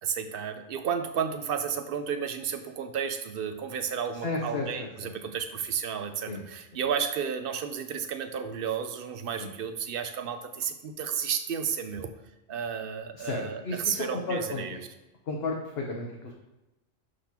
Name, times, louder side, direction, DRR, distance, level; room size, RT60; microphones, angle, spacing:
voice 1, 0.0-12.1 12.5-14.8, right 7 dB, 60° right, 8 dB, 0.7 m, -32 dB
voice 2, 4.2-5.1 6.3-6.4 9.4-9.5 13.2-14.8 15.3-16.3, left 3 dB, 55° left, 0 dB, 1.0 m, -33 dB
11.0 x 4.1 x 2.9 m, 0.98 s
omnidirectional pair, 1.3 m